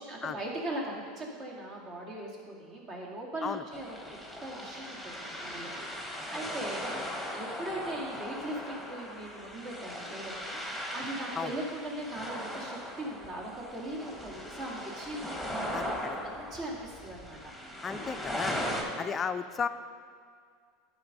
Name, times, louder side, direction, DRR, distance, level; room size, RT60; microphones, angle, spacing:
voice 1, 0.0-4.0 4.4-17.4 18.7-19.1, right 1 dB, 45° right, -2 dB, 2.2 m, -40 dB
sound 1, 3.7-18.8, equal, 10° right, 1.7 m, -39 dB
voice 2, 15.7-16.2 17.8-18.6 19.0-19.7, left 6 dB, 30° left, 10 dB, 0.5 m, -34 dB
11.5 x 4.3 x 5.2 m, 2.1 s
hypercardioid pair, 90°, 0 cm